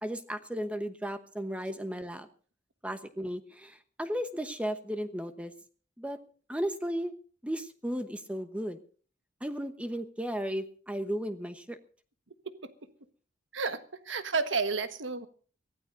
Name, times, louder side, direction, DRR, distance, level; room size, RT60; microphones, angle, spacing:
voice 1, 0.0-2.3 2.8-5.5 6.0-6.2 6.5-7.1 7.4-8.8 9.4-11.8, equal, 5° right, 8 dB, 1.0 m, -35 dB
voice 2, 13.5-15.3, right 4 dB, 90° right, 10 dB, 1.4 m, -32 dB
23.0 x 16.0 x 2.6 m, 0.41 s
head